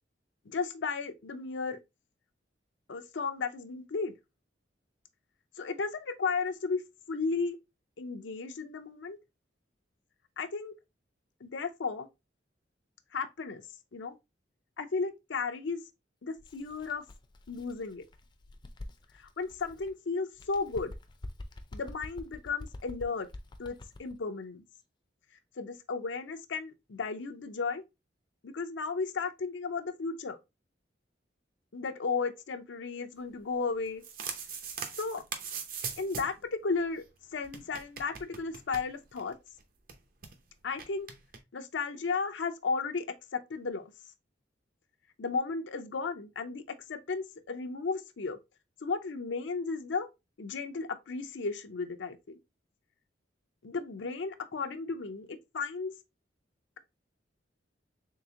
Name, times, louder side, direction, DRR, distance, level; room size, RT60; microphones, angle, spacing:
voice 1, 0.5-1.8 2.9-4.1 5.6-6.8 7.1-7.6 8.0-9.2 10.4-10.7 11.4-12.1 13.1-13.6 13.9-14.2 14.8-15.8 16.2-17.0 17.5-18.0 19.2-20.9 21.7-23.3 23.6-24.6 25.6-27.8 28.4-30.4 31.7-34.0 35.0-35.2 36.0-37.0 37.3-39.3 40.6-41.1 41.5-43.1 43.3-43.9 45.2-48.4 48.8-50.1 50.4-52.4 53.6-55.9, left 4 dB, 90° left, 0.6 m, -34 dB
Bird, 16.4-19.9 20.3-24.2, left 1 dB, 25° left, 0.4 m, -47 dB
sound 1, 33.8-36.4 36.7-36.8 37.0-37.1 37.4-39.3 39.6-39.7 39.9-40.3 40.8-41.4, right 6 dB, 50° right, 0.7 m, -40 dB
3.7 x 3.4 x 2.8 m
head